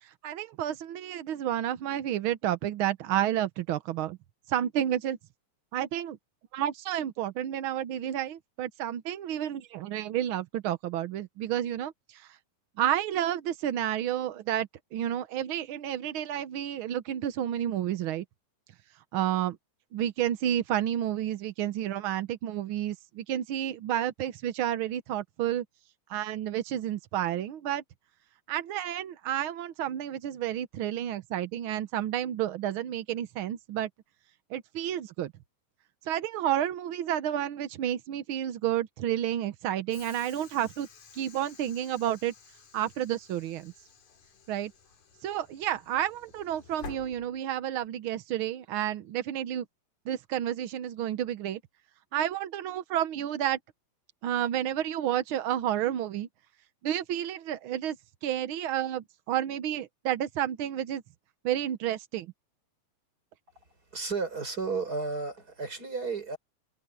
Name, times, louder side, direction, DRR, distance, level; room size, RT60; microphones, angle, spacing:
voice 1, 0.0-4.2 4.5-5.2 5.7-6.2 6.5-12.3 12.8-18.2 19.1-19.6 19.9-25.6 26.1-27.8 28.5-33.9 34.5-35.3 36.0-40.9 41.1-42.3 42.7-43.7 44.5-44.7 45.2-49.6 50.1-51.6 52.1-53.6 54.2-56.3 56.8-58.0 58.2-61.0 61.4-62.3, right 11 dB, 75° right, 1.2 m, -30 dB
Train / Sliding door, 39.9-47.9, left 6 dB, 70° left, 4.3 m, -51 dB
voice 2, 63.9-66.4, right 4 dB, 30° right, 5.4 m, -33 dB
omnidirectional pair, 3.4 m